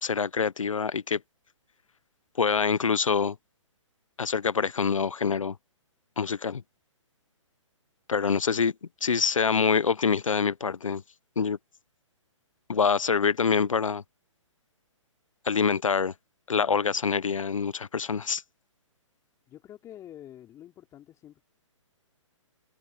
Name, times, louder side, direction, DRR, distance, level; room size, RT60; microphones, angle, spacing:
voice 1, 0.0-1.2 2.4-3.4 4.2-5.6 6.2-6.6 8.1-8.7 9.0-11.0 11.4-11.6 12.7-14.0 15.4-16.1 16.5-18.4, left 5 dB, 85° left, 1.2 m, -25 dB
voice 2, 19.5-21.4, left 11 dB, 20° left, 4.1 m, -47 dB
hypercardioid pair, 135°, 16 cm